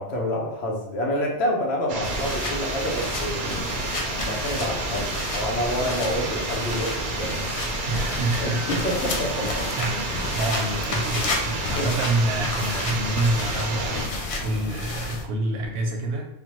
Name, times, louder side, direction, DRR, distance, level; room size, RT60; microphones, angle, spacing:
voice 1, 0.0-3.8 4.0-7.6 8.4-9.7 11.8-11.9, left 1 dB, 80° left, 0 dB, 1.0 m, -28 dB
sound 1, 1.9-14.1, right 3 dB, 60° right, 0.6 m, -30 dB
sound 2, 2.0-15.2, left 2 dB, 50° left, 0.4 m, -31 dB
voice 2, 7.9-8.6 9.8-16.3, right 2 dB, 90° right, 2 dB, 0.9 m, -27 dB
sound 3, 8.4-14.1, left 1 dB, 15° left, 1.1 m, -43 dB
3.3 x 2.1 x 2.9 m, 0.85 s
omnidirectional pair, 1.1 m